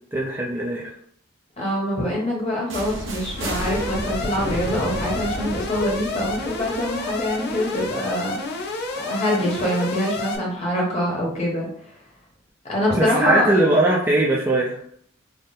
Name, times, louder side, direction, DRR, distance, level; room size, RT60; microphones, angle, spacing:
voice 1, 0.1-0.9 13.0-14.8, right 1 dB, 10° right, -4 dB, 0.3 m, -20 dB
voice 2, 1.6-8.7 9.0-11.7 12.7-13.5, equal, 30° left, -2 dB, 1.0 m, -24 dB
sound 1, 2.7-8.5, right 1 dB, 65° right, 0.8 m, -33 dB
Alarm, 3.4-10.4, left 3 dB, 50° left, 0.5 m, -30 dB
3.6 x 2.0 x 4.0 m, 0.62 s
head